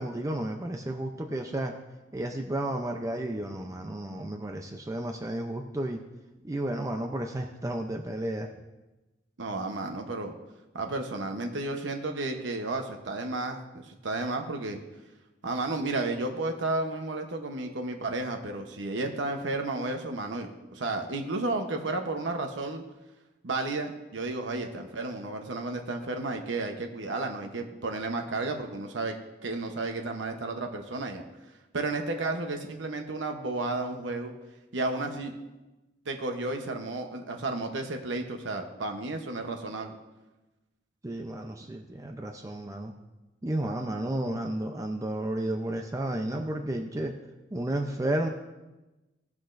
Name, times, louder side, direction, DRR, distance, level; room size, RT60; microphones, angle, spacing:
voice 1, 0.0-1.7 2.1-6.0 6.4-8.5 41.0-42.9 43.4-47.1 47.5-48.3, right 1 dB, 20° right, 3 dB, 0.5 m, -32 dB
voice 2, 9.4-10.3 10.7-14.8 15.4-22.8 23.4-29.2 29.4-31.2 31.7-34.3 34.7-35.3 36.1-39.9, right 2 dB, 85° right, 4 dB, 0.9 m, -32 dB
18.0 x 6.1 x 2.6 m, 1.1 s
head